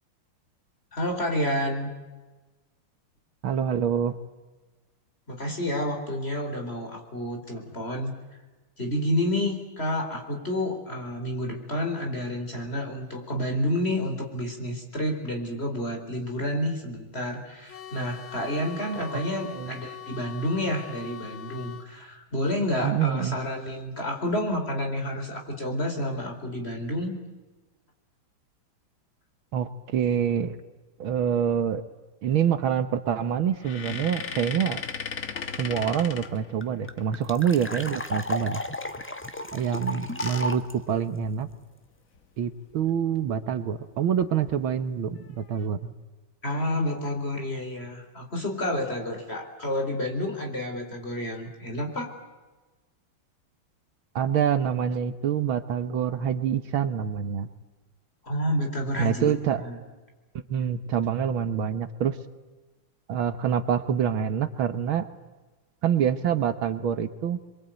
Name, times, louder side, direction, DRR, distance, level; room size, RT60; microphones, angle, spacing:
voice 1, 0.9-1.9 5.3-8.1 8.8-27.2 46.4-52.1 58.2-59.3 59.6-59.8, left 1 dB, 25° left, 3 dB, 4.5 m, -29 dB
voice 2, 3.4-4.2 19.0-19.2 19.5-19.7 22.8-23.4 29.5-30.6 31.0-31.8 32.2-34.8 35.6-38.6 39.5-41.5 42.4-45.9 54.2-57.5 59.0-59.6 60.5-62.2 63.1-65.1 65.8-67.4, right 8 dB, 70° right, 11 dB, 1.9 m, -26 dB
sound 1, 17.7-21.9, left 10 dB, 65° left, 1.9 m, -42 dB
sound 2, 33.5-37.0 39.7-41.6 42.2-42.3 42.5-42.7 44.2-44.5 45.1-45.7, left 6 dB, 45° left, 1.6 m, -37 dB
sound 3, 36.0-36.1 36.2-36.3 36.6-40.7, left 1 dB, 10° left, 0.7 m, -33 dB
28.0 x 23.0 x 9.2 m, 1.2 s
omnidirectional pair, 2.4 m